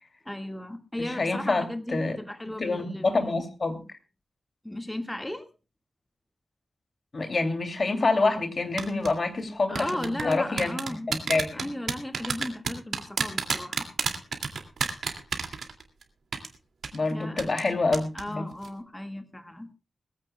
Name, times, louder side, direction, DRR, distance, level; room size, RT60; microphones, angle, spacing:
voice 1, 0.3-3.4 4.6-5.5 9.7-11.1 11.5-13.9 17.1-17.5 18.1-19.7, left 1 dB, 10° left, 6 dB, 1.7 m, -36 dB
voice 2, 1.0-2.2 2.6-4.0 7.1-10.8 11.1-11.7 16.9-18.5, left 3 dB, 40° left, 7 dB, 2.6 m, -27 dB
sound 1, 8.8-9.1 9.7-16.0 16.3-16.5 16.8-17.0 17.4-17.7 17.9-18.2 18.5-18.7, right 5 dB, 70° right, 2.4 m, -29 dB
22.0 x 15.5 x 2.3 m, 0.32 s
wide cardioid pair, 155°, 0 cm